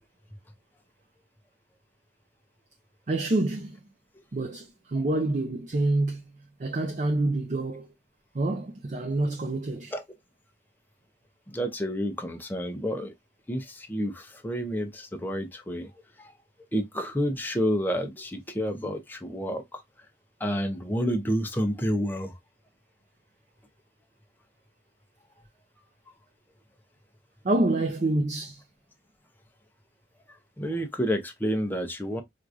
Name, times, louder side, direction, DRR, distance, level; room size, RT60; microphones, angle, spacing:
voice 1, 3.1-3.8 4.3-6.2 6.6-7.9 8.3-9.9 27.4-28.6, right 2 dB, 40° right, 0.5 m, -27 dB
voice 2, 11.5-13.1 13.5-15.9 16.2-16.3 16.7-19.8 20.4-22.3 30.6-32.2, equal, 10° left, 0.5 m, -29 dB
4.5 x 2.5 x 2.5 m
head